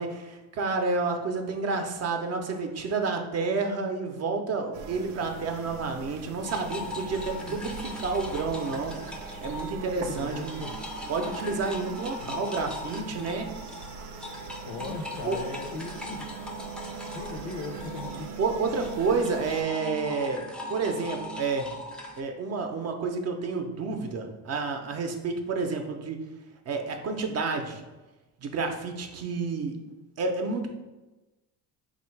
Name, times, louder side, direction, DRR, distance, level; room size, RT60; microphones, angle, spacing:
voice 1, 0.0-8.9 9.4-10.6 11.1-13.5 14.8-14.9 15.2-15.4 18.4-20.4 20.7-21.7 22.2-26.2 26.7-27.8 28.4-29.8 30.2-30.7, right 4 dB, 45° right, 5 dB, 0.6 m, -30 dB
sound 1, 4.7-19.6, right 4 dB, 90° right, 0.6 m, -41 dB
sound 2, 6.4-9.8 10.1-22.2, left 1 dB, 5° left, 0.4 m, -40 dB
voice 2, 10.1-10.8 12.2-12.4 14.6-16.2 17.1-18.3, left 3 dB, 65° left, 6 dB, 0.6 m, -38 dB
3.8 x 2.4 x 4.5 m, 1.1 s
cardioid pair, 110°, 35 cm